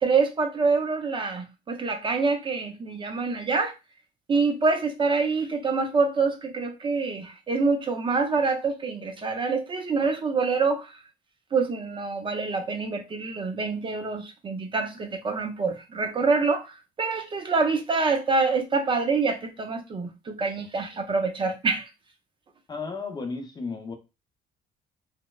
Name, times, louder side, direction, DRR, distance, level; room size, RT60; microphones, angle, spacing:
voice 1, 0.0-3.7 4.3-10.9 11.5-21.9, right 4 dB, 30° right, 0.5 m, -26 dB
voice 2, 22.7-23.9, left 4 dB, 25° left, 0.6 m, -33 dB
4.3 x 2.1 x 2.3 m
cardioid pair, 110°, 17 cm